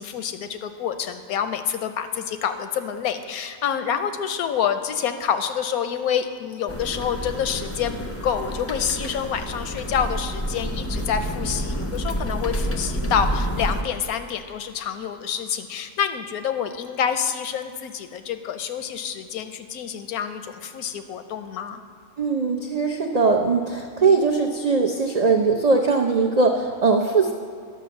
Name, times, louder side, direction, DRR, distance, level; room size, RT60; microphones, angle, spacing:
voice 1, 0.0-21.8, left 8 dB, 80° left, 9 dB, 1.1 m, -27 dB
sound 1, 6.7-13.8, equal, 20° left, 0.3 m, -29 dB
voice 2, 22.2-27.3, right 4 dB, 65° right, 1 dB, 0.4 m, -20 dB
11.0 x 5.9 x 7.0 m, 2.2 s
omnidirectional pair, 1.5 m